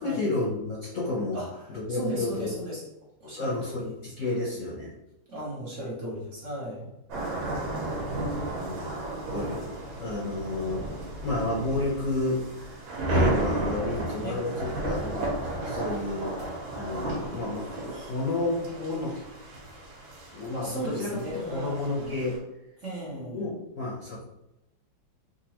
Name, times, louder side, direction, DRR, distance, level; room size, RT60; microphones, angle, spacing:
voice 1, 0.0-1.4 1.7-2.5 3.2-3.9 4.2-4.9 8.6-8.9 9.3-9.7 10.0-10.9 11.2-12.8 13.0-19.2 20.3-21.2 21.5-22.4 23.1-24.2, left 2 dB, 50° left, -5 dB, 1.0 m, -31 dB
voice 2, 1.3-2.8 3.2-4.1 4.4-4.5 5.3-6.9 14.2-14.7 20.6-22.2 22.8-23.5, right 1 dB, 50° right, -5 dB, 1.0 m, -36 dB
sound 1, 7.1-22.4, right 2 dB, 90° right, 1.7 m, -33 dB
3.8 x 2.6 x 2.9 m, 0.91 s
omnidirectional pair, 2.1 m